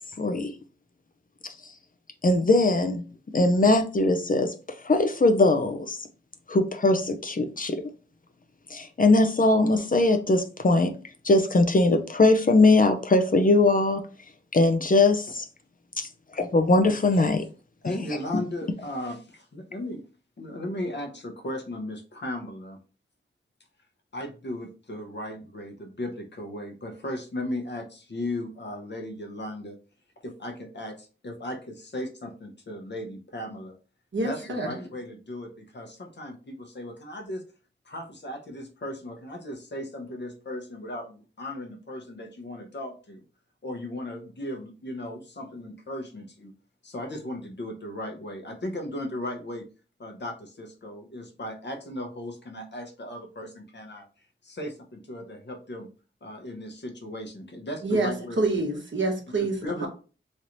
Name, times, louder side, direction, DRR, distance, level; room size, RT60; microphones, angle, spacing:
voice 1, 0.2-0.5 2.2-3.0 3.3-4.5 4.8-6.0 6.5-7.8 8.7-10.9 11.2-14.0 14.5-15.4 16.0-16.1 16.3-17.4, left 2 dB, 40° left, 0.5 m, -21 dB
voice 2, 17.8-20.0 20.4-22.8 24.1-29.8 30.2-33.8 34.2-37.4 37.8-43.2 43.6-46.5 46.8-49.6 50.0-54.1 54.4-55.9 56.2-58.5 59.6-59.9, left 1 dB, 60° left, 0.9 m, -36 dB
voice 3, 34.1-34.8 57.8-59.9, right 2 dB, 65° right, 1.1 m, -27 dB
3.2 x 2.9 x 2.5 m
wide cardioid pair, 60°, 21 cm